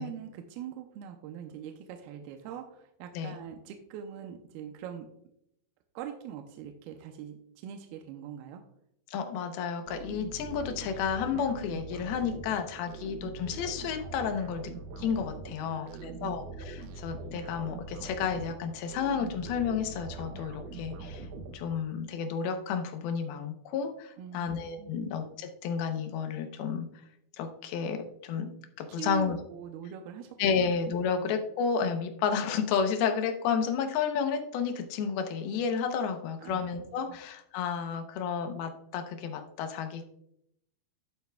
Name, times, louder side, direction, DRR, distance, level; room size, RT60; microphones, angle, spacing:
voice 1, 0.0-5.1 6.0-8.6 15.6-16.4 24.2-25.1 28.9-30.7 31.0-31.1 36.4-36.7 37.1-37.2, right 9 dB, 90° right, 4 dB, 2.6 m, -42 dB
voice 2, 9.1-21.3 21.5-26.9 27.4-28.0 28.2-29.4 30.4-40.0, left 6 dB, 85° left, 7 dB, 2.8 m, -31 dB
sound 1, 9.9-22.1, right 3 dB, 75° right, 2.1 m, -43 dB
11.5 x 8.2 x 2.3 m, 0.74 s
omnidirectional pair, 4.3 m